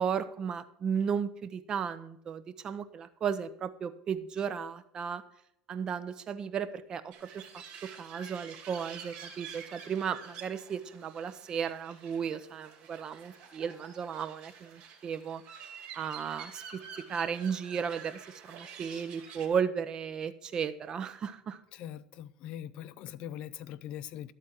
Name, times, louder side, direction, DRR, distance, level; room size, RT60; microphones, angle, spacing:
voice 1, 0.0-5.2 5.7-15.4 15.9-16.8 17.1-21.6, right 7 dB, 35° right, 0.8 m, -35 dB
sound 1, 7.1-19.5, right 7 dB, 60° right, 2.5 m, -48 dB
voice 2, 21.7-24.3, left 11 dB, 60° left, 0.5 m, -42 dB
12.0 x 4.2 x 7.5 m
cardioid pair, 125°, 2 cm